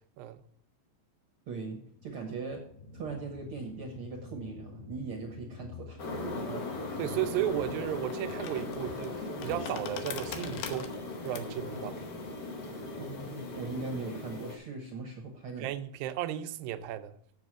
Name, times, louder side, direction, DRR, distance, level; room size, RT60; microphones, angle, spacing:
voice 1, 1.5-2.6 2.9-6.3 13.0-15.7, right 4 dB, 60° right, 1.4 m, -40 dB
sound 1, 1.9-10.8 11.2-11.3, left 5 dB, 35° left, 2.1 m, -50 dB
sound 2, 6.0-14.6, left 2 dB, 60° left, 1.0 m, -38 dB
voice 2, 7.0-11.0 11.2-12.0 15.6-17.1, right 12 dB, 85° right, 2.4 m, -34 dB
sound 3, 7.2-13.9, left 8 dB, 90° left, 2.9 m, -45 dB
8.0 x 7.3 x 6.0 m
omnidirectional pair, 4.1 m